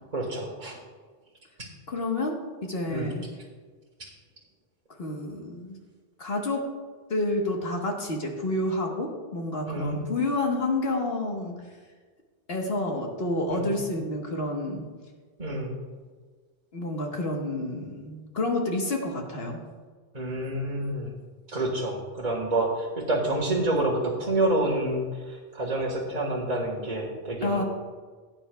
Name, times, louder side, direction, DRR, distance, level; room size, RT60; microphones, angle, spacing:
voice 1, 0.1-0.8 2.9-3.1 9.7-10.0 13.5-13.7 15.4-15.8 20.1-21.1 21.5-27.6, right 1 dB, 35° right, -5 dB, 1.6 m, -28 dB
voice 2, 1.9-3.2 5.0-5.8 6.2-6.7 7.1-11.6 12.5-14.8 16.7-19.6 27.4-27.6, left 2 dB, 60° left, 1 dB, 1.5 m, -29 dB
17.0 x 9.0 x 2.3 m, 1.4 s
omnidirectional pair, 1.2 m